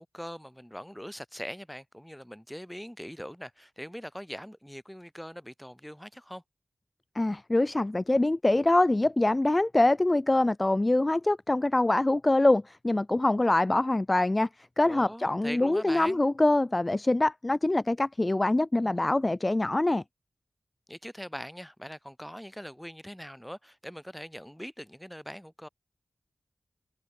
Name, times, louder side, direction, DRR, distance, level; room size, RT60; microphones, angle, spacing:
voice 1, 0.0-6.4 14.8-16.2 18.8-19.1 20.9-25.7, equal, 5° left, 4.9 m, -42 dB
voice 2, 7.1-14.5 14.8-20.0, left 2 dB, 25° left, 0.7 m, -24 dB
wide cardioid pair, 75°, 0 cm